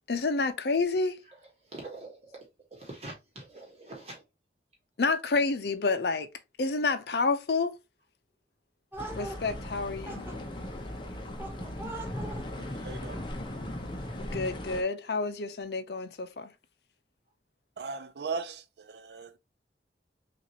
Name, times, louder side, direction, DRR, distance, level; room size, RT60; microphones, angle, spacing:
voice 1, 0.1-1.2 5.0-6.3 6.6-7.7 9.2-10.3 14.3-16.5, left 3 dB, 65° left, 0.6 m, -29 dB
voice 2, 1.7-2.4 2.7-4.2, right 2 dB, 35° right, 1.2 m, -44 dB
sound 1, 8.9-14.3, right 2 dB, 10° right, 0.9 m, -45 dB
sound 2, 9.0-14.8, left 1 dB, 25° left, 0.7 m, -38 dB
voice 3, 12.5-13.2 17.8-19.4, right 4 dB, 70° right, 0.6 m, -38 dB
6.0 x 2.5 x 2.8 m
head